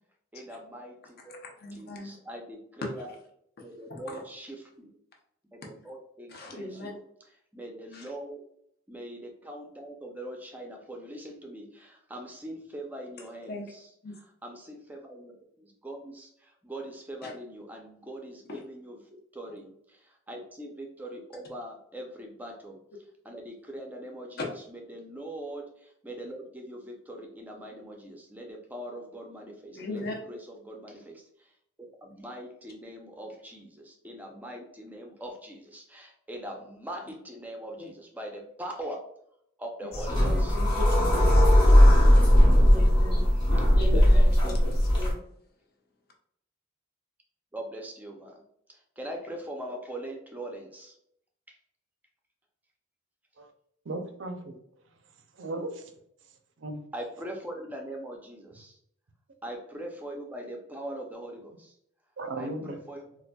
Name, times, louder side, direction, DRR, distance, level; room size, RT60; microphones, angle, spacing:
voice 1, 0.3-1.4 1.7-3.1 3.6-4.9 5.5-7.0 7.5-8.4 8.9-13.9 14.4-15.3 15.6-19.0 19.3-22.8 23.2-31.5 32.0-39.0 39.6-40.6 41.7-42.0 42.5-42.7 43.9-44.2 47.5-48.4 48.7-50.9 51.5-51.6 56.9-58.8 59.4-61.7 62.4-63.1, right 1 dB, 10° right, 1 dB, 0.5 m, -42 dB
voice 2, 1.2-2.2 2.9-3.2 3.9-4.2 6.3-6.9 7.9-8.1 13.5-13.7 14.0-14.2 17.2-17.3 18.5-18.6 24.4-24.5 29.7-30.2 37.8-37.9 39.8-41.4 42.7-43.2 43.7-45.2, left 2 dB, 45° left, 1 dB, 0.7 m, -38 dB
sound 1, 39.9-45.1, equal, 25° left, 0.9 m, -19 dB
voice 3, 53.9-54.6 55.3-55.9 56.6-56.8 62.2-62.8, right 2 dB, 65° right, 6 dB, 0.5 m, -36 dB
4.1 x 2.5 x 2.2 m, 0.72 s
head